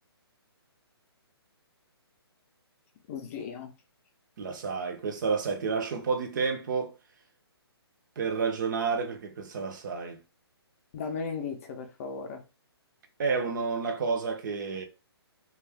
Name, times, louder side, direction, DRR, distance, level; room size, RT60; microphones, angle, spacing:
voice 1, 3.1-3.7 10.9-12.4, left 5 dB, 35° left, 0.5 m, -36 dB
voice 2, 4.4-6.9 8.2-10.2 13.2-14.9, right 5 dB, 45° right, 0.6 m, -30 dB
2.4 x 2.3 x 3.3 m
hypercardioid pair, 145°, 14 cm